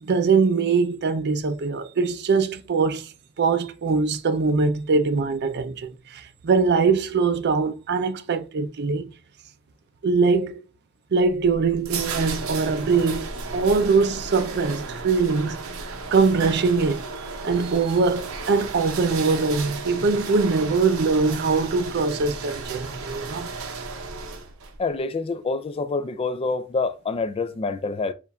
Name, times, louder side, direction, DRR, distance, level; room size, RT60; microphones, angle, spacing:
voice 1, 0.0-3.1 3.4-9.1 10.0-10.6 11.1-15.6 16.1-17.0 17.4-23.5, right 4 dB, 55° right, 0.5 m, -22 dB
sound 1, 11.2-24.8, right 4 dB, 80° right, 0.8 m, -34 dB
voice 2, 24.8-28.1, left 3 dB, 25° left, 0.3 m, -27 dB
6.9 x 2.5 x 2.3 m
head